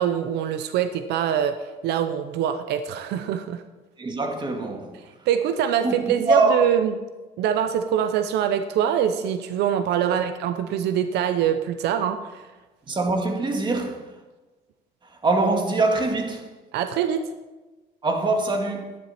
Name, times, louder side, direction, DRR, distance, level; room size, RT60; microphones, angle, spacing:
voice 1, 0.0-3.6 5.3-7.0 7.4-12.5 16.7-17.2, right 9 dB, 80° right, 0.8 m, -24 dB
voice 2, 4.0-4.9 5.8-6.6 10.1-10.2 12.9-14.1 15.2-16.5 18.0-19.0, right 3 dB, 25° right, 1.9 m, -24 dB
13.0 x 10.5 x 4.3 m
cardioid pair, 110°, 17 cm